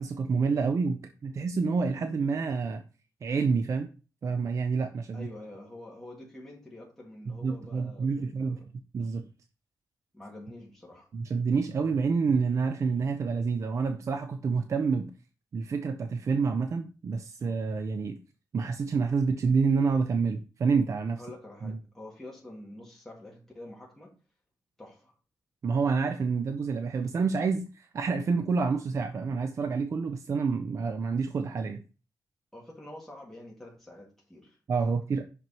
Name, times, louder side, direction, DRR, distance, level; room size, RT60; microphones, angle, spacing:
voice 1, 0.0-2.8 3.2-3.9 4.2-5.3 7.3-8.6 8.9-9.3 11.1-15.1 15.5-18.2 18.5-21.2 21.6-21.8 25.6-31.8 34.7-35.2, right 5 dB, 50° right, 7 dB, 0.5 m, -28 dB
voice 2, 5.1-8.6 10.1-11.1 21.2-24.1 24.8-25.1 32.5-34.6, left 1 dB, 5° left, -4 dB, 1.9 m, -47 dB
6.0 x 6.0 x 2.9 m, 0.33 s
wide cardioid pair, 140°, 7 cm